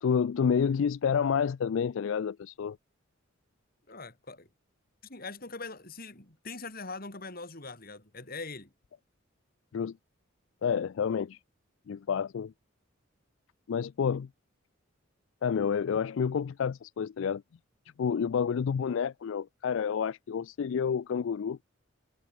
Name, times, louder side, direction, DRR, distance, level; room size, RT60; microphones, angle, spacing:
voice 1, 0.0-2.8 9.7-10.0 10.6-11.4 11.9-12.5 13.7-14.3 15.4-17.4 18.0-21.6, left 7 dB, 70° left, 0.4 m, -29 dB
voice 2, 3.9-4.5 5.0-8.7, left 3 dB, 45° left, 4.0 m, -42 dB
head